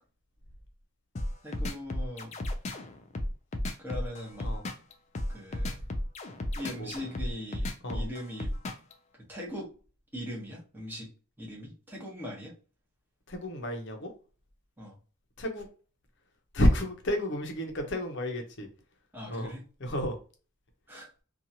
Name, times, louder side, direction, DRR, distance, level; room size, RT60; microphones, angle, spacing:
sound 1, 1.2-8.9, left 1 dB, 30° left, 0.3 m, -33 dB
voice 1, 1.4-2.3 3.8-4.5 5.3-5.8 6.5-8.5 9.3-9.7 10.1-11.1 11.4-12.5 14.8-15.0 19.1-19.6 20.9-21.1, equal, 10° right, -3 dB, 0.9 m, -40 dB
voice 2, 13.3-14.1 15.4-15.7 16.5-18.7 19.3-19.5 19.8-20.2, equal, 55° left, 4 dB, 0.7 m, -30 dB
2.7 x 2.4 x 2.7 m, 0.37 s
head